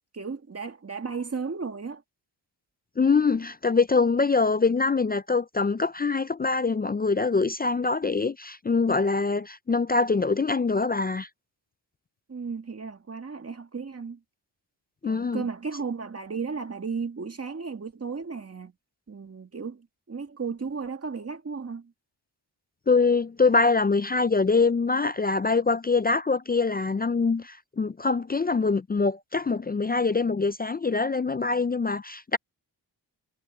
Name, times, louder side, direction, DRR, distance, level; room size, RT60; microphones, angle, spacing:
voice 1, 0.0-2.0 12.3-14.2 15.0-18.7 19.1-21.9, right 5 dB, 35° right, 2.1 m, -34 dB
voice 2, 3.0-11.3 15.0-15.4 22.9-32.4, left 4 dB, 20° left, 0.4 m, -24 dB
wide cardioid pair, 95°, 44 cm